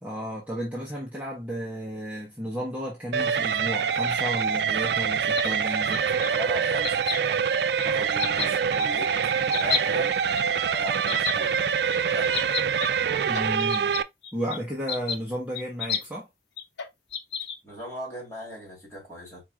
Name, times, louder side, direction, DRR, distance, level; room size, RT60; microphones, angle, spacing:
voice 1, 0.0-6.1 13.2-13.9 14.3-16.3, equal, 10° right, 1.1 m, -33 dB
sound 1, 3.1-14.0, right 7 dB, 70° right, 0.3 m, -25 dB
sound 2, 5.3-6.3 6.8-7.2 7.8-8.5 8.8-8.9 9.5-9.8 10.4-10.5 11.1-11.3 11.9-12.0 12.2-12.9 13.2-14.6 14.9-15.2 15.5-16.1 16.6-17.6, left 7 dB, 85° left, 0.7 m, -30 dB
voice 2, 6.2-7.4 7.8-10.2 10.7-11.6 12.1-12.6 17.6-19.4, equal, 15° left, 2.9 m, -39 dB
4.6 x 4.6 x 2.3 m
head